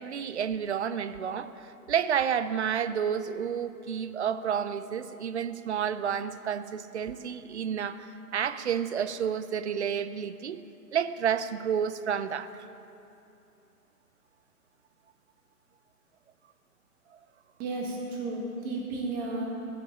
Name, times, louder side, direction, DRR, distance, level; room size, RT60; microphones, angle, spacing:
voice 1, 0.0-10.6 10.9-12.6, right 8 dB, 45° right, 14 dB, 0.5 m, -30 dB
voice 2, 17.6-19.5, right 2 dB, 20° right, -1 dB, 1.6 m, -33 dB
13.5 x 6.1 x 8.5 m, 2.8 s
figure-of-eight pair, 135°, 48 cm